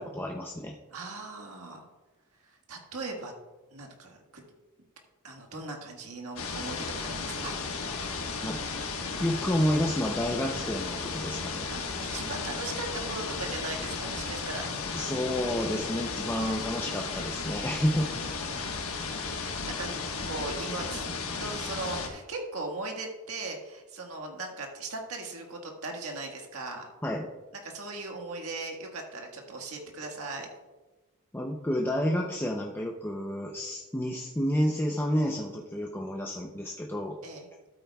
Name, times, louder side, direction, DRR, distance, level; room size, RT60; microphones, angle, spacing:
voice 1, 0.0-0.8 8.4-8.6 9.2-11.7 14.9-18.2 27.0-27.3 31.3-37.2, equal, 10° left, 0 dB, 0.5 m, -30 dB
voice 2, 0.9-1.9 2.4-3.3 3.7-4.4 5.2-7.5 11.7-14.7 17.8-18.7 19.4-19.9 20.2-21.0 21.4-26.9 27.6-30.5 37.2-37.5, right 3 dB, 75° right, 2 dB, 1.6 m, -39 dB
sound 1, 6.4-22.1, left 4 dB, 70° left, 1.3 m, -34 dB
12.5 x 8.8 x 2.3 m, 1.2 s
head